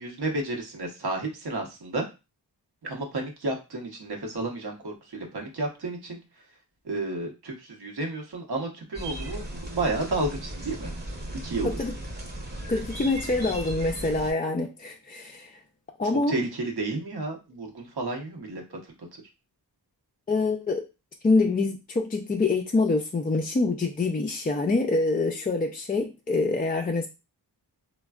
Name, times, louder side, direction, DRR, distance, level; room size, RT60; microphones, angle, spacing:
voice 1, 0.0-2.0 2.8-6.2 6.8-10.9 11.4-11.8 16.0-18.9, right 2 dB, 60° right, 2 dB, 0.9 m, -31 dB
sound 1, 8.9-14.3, right 1 dB, 25° right, 0.8 m, -36 dB
voice 2, 12.7-15.6 16.0-16.3 20.3-20.8 21.2-27.1, left 3 dB, 20° left, 2 dB, 0.3 m, -25 dB
3.2 x 2.2 x 2.3 m, 0.27 s
cardioid pair, 55°, 43 cm